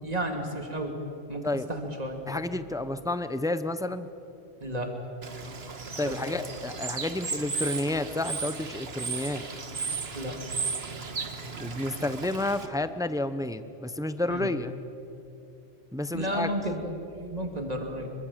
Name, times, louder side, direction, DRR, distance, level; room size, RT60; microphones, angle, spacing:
voice 1, 0.0-0.9 1.3-2.2 4.6-4.9 6.0-6.2 10.1-10.4 14.3-14.5 16.1-18.1, right 1 dB, 35° right, 3 dB, 3.0 m, -32 dB
voice 2, 2.3-4.1 6.0-9.4 11.6-14.7 15.9-16.5, left 2 dB, 5° right, 11 dB, 0.7 m, -30 dB
Bird / Water, 5.2-12.7, right 4 dB, 60° right, 1.7 m, -35 dB
26.5 x 24.0 x 7.5 m, 2.8 s
omnidirectional pair, 1.2 m